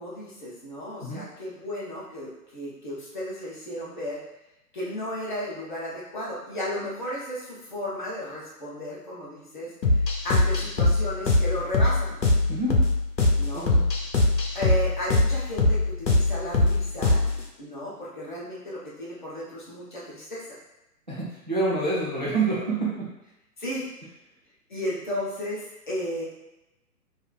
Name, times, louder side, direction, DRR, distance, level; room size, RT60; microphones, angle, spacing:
voice 1, 0.0-4.2 4.7-9.7 10.2-12.2 13.4-13.7 14.5-17.2 17.6-20.6 23.6-23.9 24.7-26.2, left 1 dB, 30° left, -7 dB, 0.5 m, -34 dB
sound 1, 9.8-17.4, left 2 dB, 90° left, 0.6 m, -22 dB
voice 2, 13.5-13.9 21.1-23.1, right 3 dB, 30° right, -8 dB, 0.4 m, -27 dB
2.8 x 2.4 x 2.2 m, 0.94 s
figure-of-eight pair, 125°, 49 cm